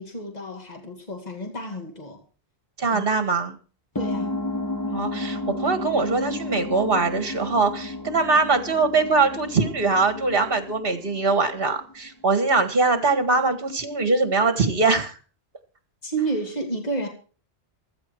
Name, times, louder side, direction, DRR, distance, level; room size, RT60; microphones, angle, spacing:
voice 1, 0.0-2.2 2.9-3.0 3.9-4.4 16.0-17.1, right 2 dB, 35° left, 1 dB, 2.8 m, -30 dB
voice 2, 2.8-3.6 4.9-15.2, right 3 dB, 55° right, 9 dB, 2.1 m, -22 dB
sound 1, 4.0-12.1, left 2 dB, 20° left, 1.2 m, -32 dB
15.5 x 13.0 x 4.6 m, 0.39 s
omnidirectional pair, 1.2 m